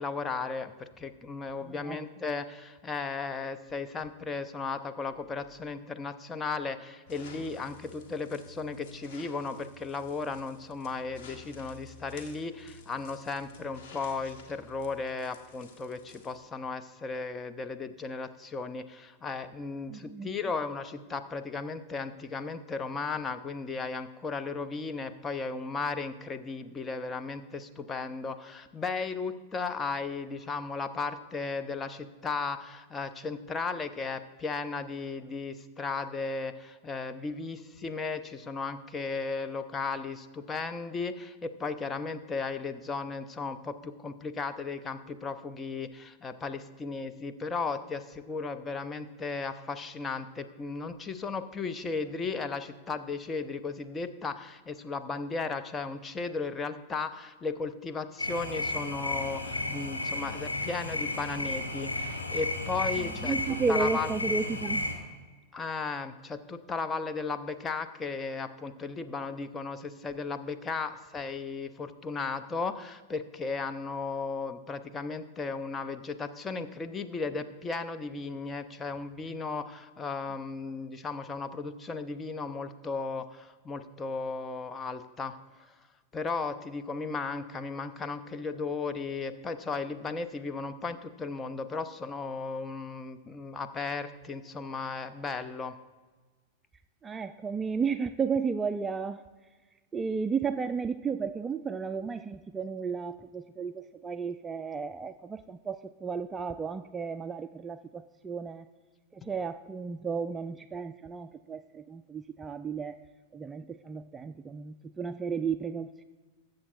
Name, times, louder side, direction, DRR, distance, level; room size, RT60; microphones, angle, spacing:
voice 1, 0.0-64.1 65.5-85.4 86.1-95.8, left 4 dB, 20° left, 9 dB, 0.6 m, -35 dB
voice 2, 1.6-2.0 19.9-20.3 63.0-64.9 97.0-99.2 99.9-108.7 109.1-113.1 113.3-116.0, right 5 dB, 15° right, 11 dB, 0.3 m, -33 dB
sound 1, 7.1-16.4, left 3 dB, 50° left, 1.5 m, -51 dB
sound 2, 58.2-64.9, left 2 dB, 85° left, 1.4 m, -33 dB
20.5 x 7.6 x 2.4 m, 1.3 s
figure-of-eight pair, 90°, 0 cm